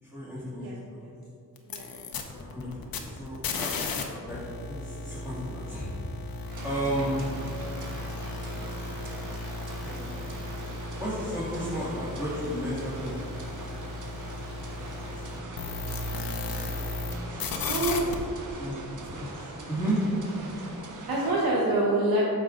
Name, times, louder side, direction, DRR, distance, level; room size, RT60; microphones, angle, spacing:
voice 1, 0.0-1.0 2.3-3.8 4.3-5.9 6.2-6.3 6.6-7.2 9.8-10.3 10.9-13.6 14.7-15.4 17.2-18.2 18.5-20.0, right 1 dB, 5° right, -10 dB, 2.1 m, -34 dB
sound 1, 1.6-4.0 4.3-17.1 17.4-18.2, left 3 dB, 75° left, 0.9 m, -35 dB
voice 2, 1.7-2.2 17.6-18.0 21.1-22.2, right 2 dB, 75° right, -5 dB, 1.3 m, -26 dB
sound 2, 6.5-21.3, right 2 dB, 55° right, 1.3 m, -42 dB
9.2 x 6.6 x 3.9 m, 2.6 s
wide cardioid pair, 120°, 36 cm